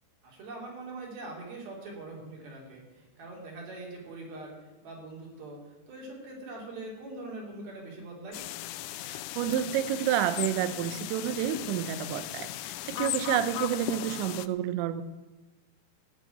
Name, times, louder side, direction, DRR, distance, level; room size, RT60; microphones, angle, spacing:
voice 1, 0.2-4.5 4.8-5.6 5.9-8.4 13.9-14.1, right 2 dB, 55° right, -2 dB, 4.9 m, -42 dB
sound 1, 8.3-14.5, left 16 dB, 85° left, 2.9 m, -37 dB
voice 2, 9.0-15.0, right 11 dB, 80° right, 12 dB, 3.0 m, -30 dB
16.0 x 6.1 x 9.2 m, 1.1 s
omnidirectional pair, 5.3 m